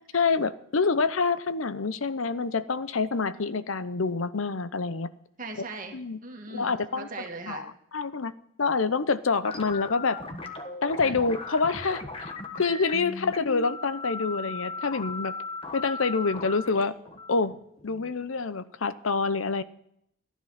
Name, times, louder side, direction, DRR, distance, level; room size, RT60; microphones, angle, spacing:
voice 1, 0.1-5.1 5.9-6.2 6.5-7.1 7.5-7.6 7.9-8.3 8.6-10.2 10.8-15.3 15.7-16.9 17.3-17.5 17.8-19.6, left 4 dB, 80° left, 14 dB, 0.8 m, -27 dB
voice 2, 5.4-7.7 11.0-11.3, right 3 dB, 40° right, 3 dB, 2.1 m, -40 dB
sound 1, 9.4-18.4, left 3 dB, 25° left, 1.4 m, -38 dB
15.0 x 10.5 x 5.8 m, 0.72 s
head